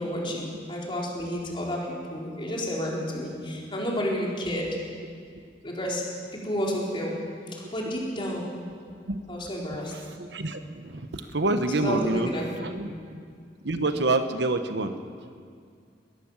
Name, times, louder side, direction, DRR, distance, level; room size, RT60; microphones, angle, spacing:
voice 1, 0.0-4.7 5.6-6.0 6.3-7.1 7.5-8.5 9.3-9.9 11.7-12.4 12.8-12.9, equal, 30° left, -3 dB, 4.6 m, -31 dB
voice 2, 10.1-12.3 12.6-12.9 13.6-14.9, right 2 dB, 70° right, 8 dB, 1.2 m, -27 dB
22.0 x 16.0 x 7.5 m, 2.2 s
head